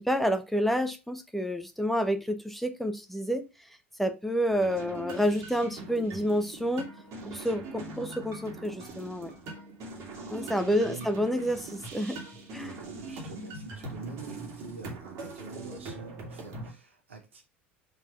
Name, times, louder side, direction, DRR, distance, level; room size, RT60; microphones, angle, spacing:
voice 1, 0.0-3.5 4.0-6.9 7.2-9.3 10.3-12.2 12.5-12.7, equal, ahead, 0.8 m, -29 dB
sound 1, 4.5-16.7, right 2 dB, 45° right, 2.0 m, -42 dB
voice 2, 10.1-11.1 12.6-17.4, right 4 dB, 75° right, 1.7 m, -46 dB
4.5 x 4.1 x 5.5 m
figure-of-eight pair, 70°, 7 cm